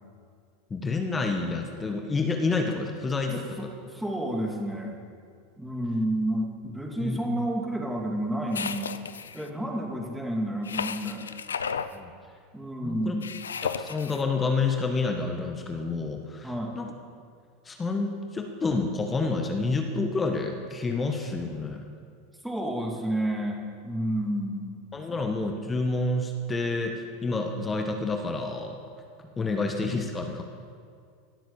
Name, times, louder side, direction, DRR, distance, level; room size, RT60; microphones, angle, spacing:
voice 1, 0.7-3.7 7.0-7.3 11.9-12.1 12.8-13.2 13.6-16.9 17.6-21.8 24.9-28.8 29.4-30.4, left 3 dB, 20° left, 4 dB, 1.4 m, -29 dB
voice 2, 3.3-5.0 5.6-9.0 9.3-11.3 12.5-13.3 16.4-16.8 22.4-24.8 25.1-25.2, right 1 dB, 5° right, 0 dB, 2.6 m, -30 dB
sound 1, 8.5-9.5 10.6-11.9 13.2-14.2, left 6 dB, 90° left, 0.5 m, -33 dB
17.0 x 7.6 x 7.3 m, 2.2 s
hypercardioid pair, 95°, 0 cm